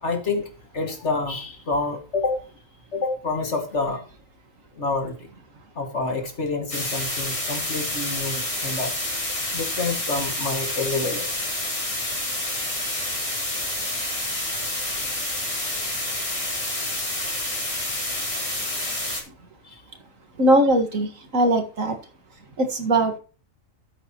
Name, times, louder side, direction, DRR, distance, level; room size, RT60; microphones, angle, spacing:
voice 1, 0.0-2.4 2.9-4.0 4.7-5.1 5.8-8.9 9.5-11.4 19.6-19.8, left 3 dB, 55° left, 4 dB, 2.5 m, -28 dB
sound 1, 6.7-19.2, left 1 dB, 25° left, 3.5 m, -28 dB
voice 2, 20.4-21.9 22.6-23.2, right 1 dB, 75° right, 6 dB, 2.3 m, -20 dB
13.0 x 8.7 x 3.0 m, 0.36 s
omnidirectional pair, 1.4 m